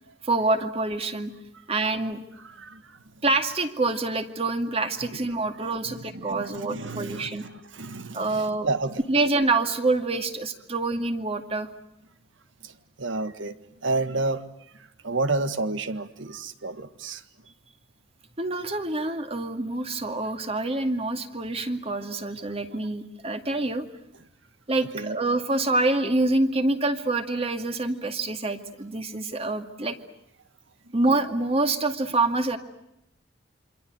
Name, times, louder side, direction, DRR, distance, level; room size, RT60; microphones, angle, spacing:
voice 1, 0.2-1.3 1.7-2.2 3.2-7.5 8.1-8.7 9.1-11.7 18.4-23.9 24.7-30.0 30.9-32.6, right 2 dB, 30° right, 7 dB, 2.3 m, -26 dB
voice 2, 2.4-3.2 5.1-5.2 5.8-9.0 12.6-17.2 22.4-22.5 24.9-25.2 30.8-30.9, right 3 dB, 75° right, 11 dB, 1.8 m, -31 dB
27.5 x 26.0 x 8.0 m, 0.82 s
head